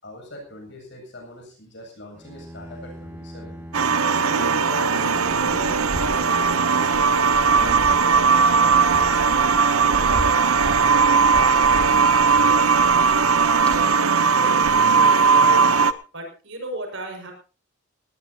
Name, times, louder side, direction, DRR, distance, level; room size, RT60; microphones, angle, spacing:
voice 1, 0.0-3.7 4.1-7.1 7.5-8.4 8.7-12.1, left 1 dB, 55° left, 2 dB, 7.9 m, -40 dB
Bowed string instrument, 2.1-10.1, equal, 10° right, 1.7 m, -41 dB
sound 1, 3.7-15.9, right 5 dB, 90° right, 0.9 m, -18 dB
sound 2, 4.9-15.7, equal, 5° left, 4.2 m, -36 dB
voice 2, 14.2-15.5 16.1-17.3, right 1 dB, 65° right, 3 dB, 5.9 m, -35 dB
19.0 x 19.0 x 2.8 m, 0.34 s
head